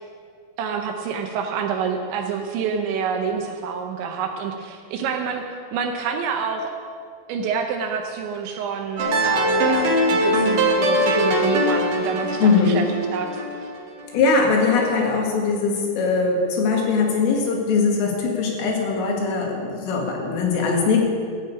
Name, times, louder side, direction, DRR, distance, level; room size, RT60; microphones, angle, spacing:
voice 1, 0.6-5.4 5.7-6.7 7.3-12.8 13.1-13.3, right 6 dB, 75° right, 3 dB, 2.9 m, -27 dB
sound 1, 9.0-14.1, equal, 55° right, 2.8 m, -21 dB
voice 2, 12.4-12.8 14.1-21.0, left 4 dB, 80° left, 0 dB, 4.6 m, -21 dB
14.0 x 7.9 x 8.5 m, 2.2 s
omnidirectional pair, 5.8 m